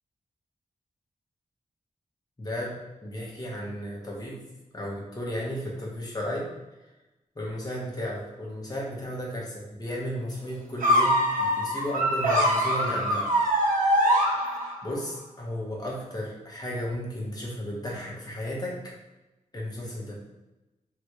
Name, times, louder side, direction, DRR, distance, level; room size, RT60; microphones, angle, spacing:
voice 1, 2.4-4.4 4.7-6.5 7.3-13.3 14.8-18.8 19.5-20.2, equal, 30° left, -4 dB, 1.4 m, -34 dB
sound 1, 10.8-14.9, equal, 75° right, 1.0 m, -23 dB
4.0 x 3.4 x 3.2 m, 1.0 s
wide cardioid pair, 80°, 14 cm